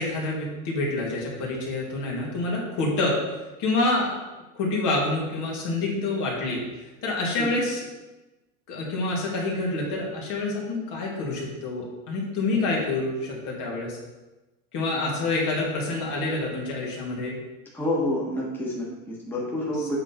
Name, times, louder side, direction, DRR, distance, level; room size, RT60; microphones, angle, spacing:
voice 1, 0.0-3.2 3.6-4.1 4.5-6.6 7.0-7.9 8.7-14.0 14.7-17.4 19.8-19.9, left 2 dB, 50° left, -3 dB, 2.1 m, -27 dB
voice 2, 17.7-20.0, left 1 dB, 5° left, -6 dB, 1.6 m, -28 dB
7.9 x 3.8 x 4.4 m, 1.1 s
supercardioid pair, 125°, 39 cm